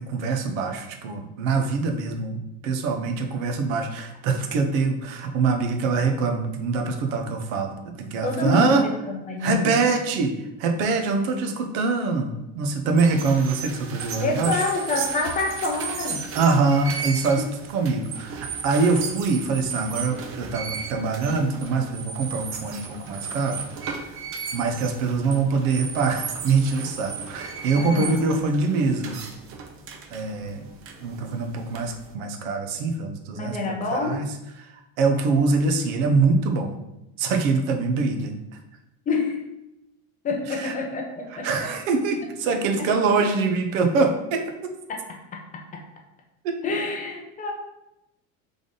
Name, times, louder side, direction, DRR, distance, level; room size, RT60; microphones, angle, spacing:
voice 1, 0.0-8.8 9.4-14.6 16.3-23.6 24.5-29.2 30.1-30.6 31.0-34.3 34.6-34.7 35.0-36.8 37.2-38.3 40.6-40.7 41.3-44.7 46.4-46.6, right 4 dB, 90° right, 5 dB, 0.8 m, -24 dB
voice 2, 8.2-9.8 14.2-16.2 17.4-17.5 27.8-28.2 33.3-34.2 39.1-39.4 40.2-41.7 42.8-42.9 44.9-45.8 46.6-47.5, left 3 dB, 20° left, 2 dB, 0.4 m, -28 dB
sound 1, 12.9-32.1, right 5 dB, 35° right, 0.5 m, -35 dB
3.8 x 3.5 x 3.7 m, 0.91 s
cardioid pair, 150°, 39 cm